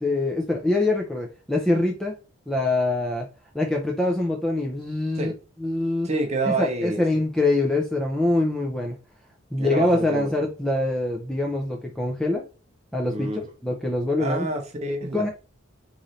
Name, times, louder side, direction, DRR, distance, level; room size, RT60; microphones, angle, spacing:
voice 1, 0.0-2.1 2.5-3.3 3.5-5.3 5.6-6.1 6.5-9.0 9.5-12.4 12.9-14.5 15.1-15.3, left 2 dB, 5° left, 0.5 m, -24 dB
voice 2, 6.0-7.0 9.6-10.3 13.1-13.4 14.2-15.3, right 2 dB, 30° right, 0.8 m, -27 dB
3.1 x 2.6 x 4.0 m
head